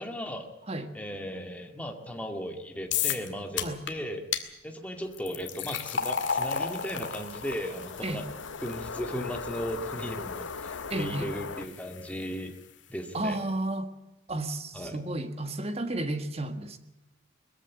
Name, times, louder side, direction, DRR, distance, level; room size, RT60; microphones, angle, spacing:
voice 1, 0.0-0.5 0.9-4.2 4.6-8.2 8.6-12.6 12.9-13.4 14.7-15.0, equal, 5° left, 2.1 m, -36 dB
sound 1, 2.9-3.3 3.6-3.9 4.3-4.4 5.1-12.3, left 7 dB, 60° left, 2.1 m, -34 dB
sound 2, 4.9-11.7, left 4 dB, 90° left, 1.1 m, -41 dB
voice 2, 10.9-11.3 13.1-13.9 14.3-16.8, right 1 dB, 30° right, 1.6 m, -32 dB
21.0 x 15.0 x 9.6 m
head